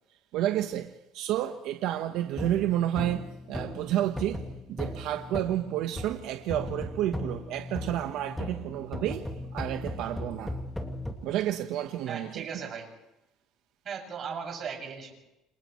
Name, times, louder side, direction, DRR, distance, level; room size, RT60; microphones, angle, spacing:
voice 1, 0.3-10.6 11.2-12.7, right 12 dB, 70° right, 1.3 m, -30 dB
sound 1, 2.3-6.2 6.5-11.1, left 1 dB, 5° left, 2.5 m, -37 dB
voice 2, 12.1-12.9 13.8-15.1, right 6 dB, 45° right, 7.2 m, -37 dB
29.0 x 27.0 x 3.3 m
cardioid pair, 130°, 0 cm